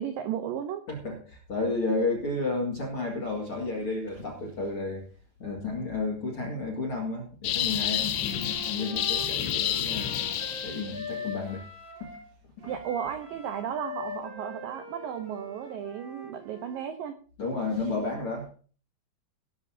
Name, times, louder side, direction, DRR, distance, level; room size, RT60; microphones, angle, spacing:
voice 1, 0.0-0.8 12.6-17.2, right 9 dB, 85° right, 8 dB, 2.0 m, -34 dB
voice 2, 0.9-5.1 5.4-10.3 10.6-11.7 12.0-12.1 12.6-12.7 17.4-18.5, left 3 dB, 45° left, -1 dB, 1.8 m, -32 dB
sound 1, 7.4-11.1, left 11 dB, 75° left, 2.7 m, -29 dB
Wind instrument woodwind instrument, 8.2-12.3 12.6-16.8, left 1 dB, 40° right, 4.3 m, -42 dB
17.5 x 12.0 x 2.8 m, 0.40 s
omnidirectional pair, 5.3 m